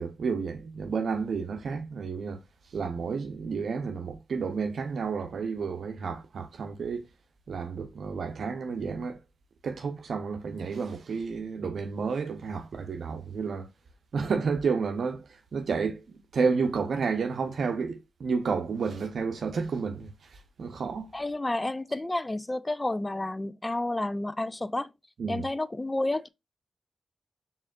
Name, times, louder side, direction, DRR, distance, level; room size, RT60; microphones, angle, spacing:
voice 1, 0.0-2.4 2.7-7.0 7.5-9.2 9.6-13.7 14.1-21.1 25.2-25.5, right 5 dB, 75° right, 0.6 m, -31 dB
voice 2, 21.1-24.9 25.3-26.3, left 2 dB, 25° left, 0.4 m, -30 dB
4.2 x 3.7 x 2.3 m
cardioid pair, 45°, 0 cm